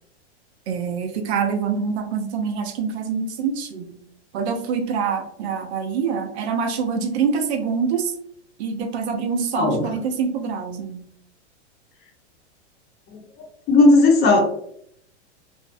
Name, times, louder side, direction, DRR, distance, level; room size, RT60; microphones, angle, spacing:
voice 1, 0.7-4.0 4.3-8.1 8.6-11.1, right 6 dB, 70° right, 5 dB, 0.6 m, -25 dB
voice 2, 13.7-14.4, left 2 dB, 30° left, 1 dB, 0.7 m, -14 dB
2.5 x 2.0 x 2.5 m, 0.69 s
hypercardioid pair, 125°, 34 cm